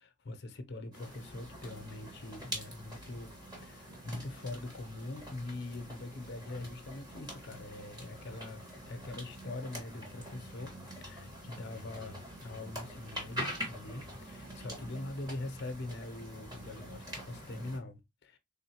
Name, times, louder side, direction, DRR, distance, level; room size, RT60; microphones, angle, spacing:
voice 1, 0.0-18.4, left 2 dB, 55° left, 0.7 m, -43 dB
sound 1, 0.9-17.8, equal, 20° right, 1.5 m, -45 dB
3.8 x 3.8 x 2.8 m
head